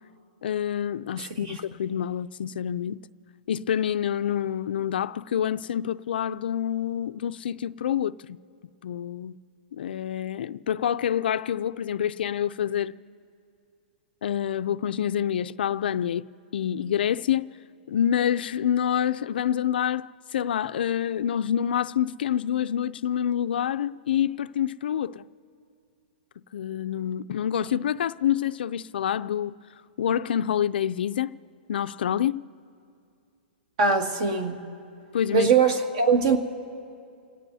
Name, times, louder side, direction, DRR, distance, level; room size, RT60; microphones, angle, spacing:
voice 1, 0.4-3.0 3.5-8.4 8.8-9.3 9.8-13.0 14.2-16.3 16.5-17.5 17.9-25.3 26.5-29.6 30.0-31.4 31.7-32.4 35.1-35.5, left 9 dB, 70° left, 0.4 m, -27 dB
voice 2, 33.8-34.6 35.3-36.4, right 5 dB, 40° right, 2.1 m, -21 dB
30.0 x 17.5 x 2.7 m
hypercardioid pair, 160°, 6 cm